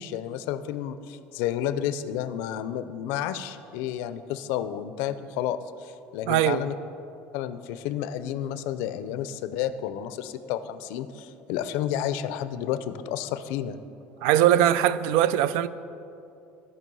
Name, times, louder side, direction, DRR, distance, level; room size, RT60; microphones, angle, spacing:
voice 1, 0.0-6.7 7.3-13.8, left 10 dB, 70° left, 12 dB, 0.5 m, -31 dB
voice 2, 6.3-6.6 14.2-15.7, right 11 dB, 75° right, 15 dB, 0.4 m, -21 dB
15.5 x 5.3 x 5.4 m, 2.7 s
cardioid pair, 170°, 4 cm